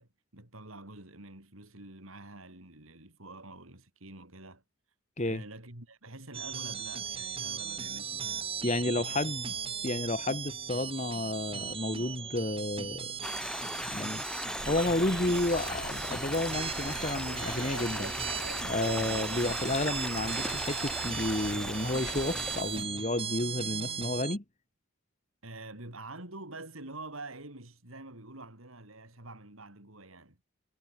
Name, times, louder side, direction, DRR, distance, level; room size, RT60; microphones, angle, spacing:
voice 1, 0.0-4.6 5.2-8.5 8.8-9.2 25.4-30.4, right 2 dB, 75° right, 5.4 m, -47 dB
sound 1, 6.3-24.4, right 7 dB, 25° right, 1.7 m, -38 dB
voice 2, 8.6-9.5 9.8-13.1 13.9-14.2 14.7-18.1 18.6-24.4, left 2 dB, 35° left, 1.5 m, -31 dB
sound 2, 13.2-22.6, left 1 dB, 5° left, 0.7 m, -37 dB
sound 3, 14.6-22.9, right 3 dB, 55° right, 1.4 m, -43 dB
head